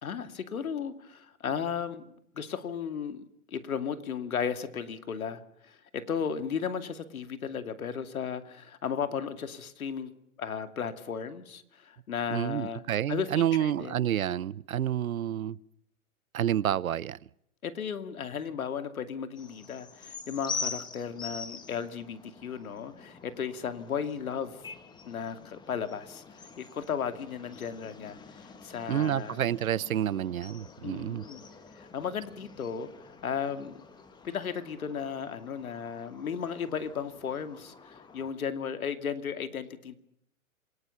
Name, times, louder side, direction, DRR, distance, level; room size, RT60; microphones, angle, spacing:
voice 1, 0.0-10.1 10.4-12.8 13.1-14.1 17.6-24.7 25.0-29.4 30.8-31.4 31.7-33.8 34.2-39.9, left 7 dB, 80° left, 10 dB, 2.6 m, -35 dB
voice 2, 12.3-15.6 16.3-17.2 28.9-31.2, right 11 dB, 75° right, 23 dB, 0.9 m, -29 dB
sound 1, 19.3-38.3, left 5 dB, 10° left, 1.7 m, -45 dB
27.5 x 19.0 x 7.1 m, 0.74 s
hypercardioid pair, 140°, 42 cm